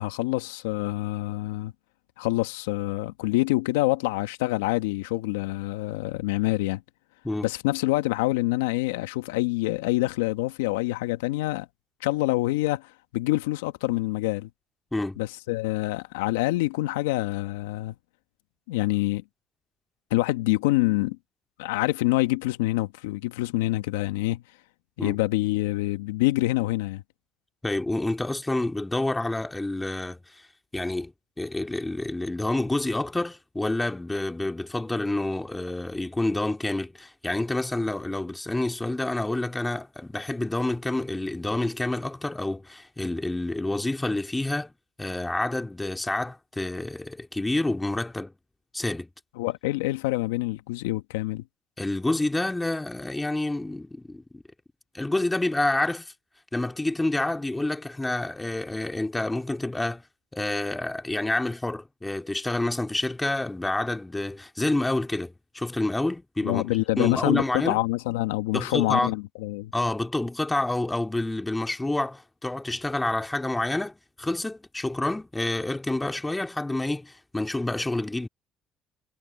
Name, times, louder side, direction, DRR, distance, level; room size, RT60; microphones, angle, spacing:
voice 1, 0.0-1.7 2.2-6.8 7.4-11.7 12.0-14.5 15.2-17.9 18.7-19.2 20.1-21.2 21.6-24.4 25.0-27.0 49.4-51.4 66.4-69.7, left 18 dB, 90° left, 1.6 m, -26 dB
voice 2, 27.6-30.5 30.7-44.7 45.0-48.3 48.7-49.1 51.8-54.4 54.9-56.1 56.5-60.0 60.3-66.6 67.0-67.8 68.5-69.1 69.7-78.3, left 2 dB, 15° left, 2.3 m, -28 dB
hypercardioid pair, 60°, 0 cm